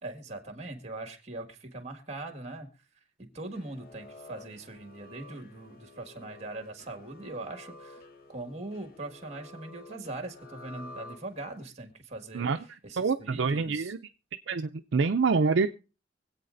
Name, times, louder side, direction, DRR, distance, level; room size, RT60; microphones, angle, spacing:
voice 1, 0.0-2.7 3.2-8.0 8.3-12.5 12.8-13.9, right 2 dB, 35° right, 5 dB, 1.8 m, -41 dB
sound 1, 3.4-11.7, left 2 dB, 50° left, 1.0 m, -50 dB
voice 2, 13.0-14.0 14.5-15.8, right 4 dB, 70° right, 7 dB, 0.5 m, -26 dB
25.0 x 8.4 x 2.6 m, 0.34 s
head